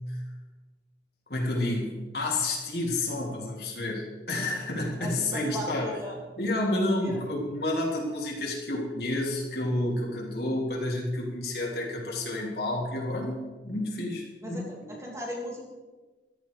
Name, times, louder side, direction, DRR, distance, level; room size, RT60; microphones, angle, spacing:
voice 1, 1.3-6.0 6.4-14.6, left 1 dB, 60° left, -2 dB, 3.6 m, -30 dB
voice 2, 5.0-6.2 7.0-7.2 14.4-15.6, equal, 15° right, -2 dB, 2.8 m, -37 dB
15.0 x 13.5 x 5.1 m, 1.3 s
head